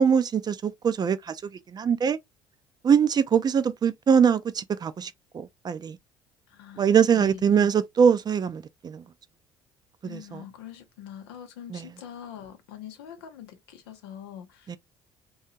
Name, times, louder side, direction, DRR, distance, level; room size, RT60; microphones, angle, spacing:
voice 1, 0.0-1.4 1.7-2.2 2.8-6.0 6.8-9.0 10.0-10.4 11.7-11.8 14.7-14.8, right 7 dB, 35° right, 0.4 m, -23 dB
voice 2, 6.5-7.7 10.0-14.8, left 9 dB, 85° left, 0.6 m, -44 dB
2.7 x 2.3 x 2.6 m
hypercardioid pair, 60°, 13 cm